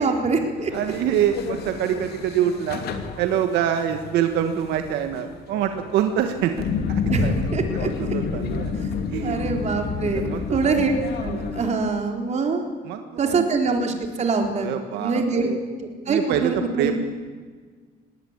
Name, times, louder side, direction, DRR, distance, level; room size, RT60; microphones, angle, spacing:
voice 1, 0.0-0.7 7.1-7.9 8.8-12.7 13.2-15.5 15.8-16.9, right 4 dB, 40° right, 3 dB, 3.7 m, -24 dB
sound 1, 0.6-11.7, left 5 dB, 70° left, 2.5 m, -30 dB
voice 2, 0.7-2.9 3.2-8.7 9.1-9.5 10.1-10.8 12.8-13.4 14.6-15.6 16.1-16.9, right 10 dB, 85° right, 6 dB, 1.5 m, -26 dB
20.5 x 18.0 x 8.8 m, 1.5 s
cardioid pair, 110°, 17 cm